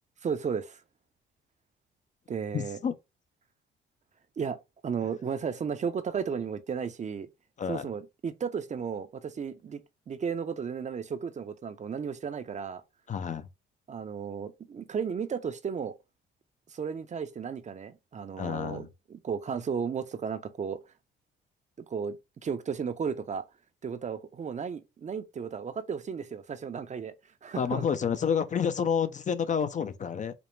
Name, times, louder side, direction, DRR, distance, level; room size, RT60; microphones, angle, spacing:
voice 1, 0.2-0.8 2.3-2.8 4.4-7.3 7.7-9.8 10.1-12.8 13.9-15.9 16.7-20.8 21.9-23.4 23.8-27.1 27.4-27.8, right 6 dB, 35° right, 0.6 m, -34 dB
voice 2, 2.5-2.9 7.6-7.8 13.1-13.5 18.4-18.9 27.6-30.3, left 7 dB, 40° left, 0.5 m, -29 dB
5.1 x 2.1 x 3.1 m
cardioid pair, 90°, 20 cm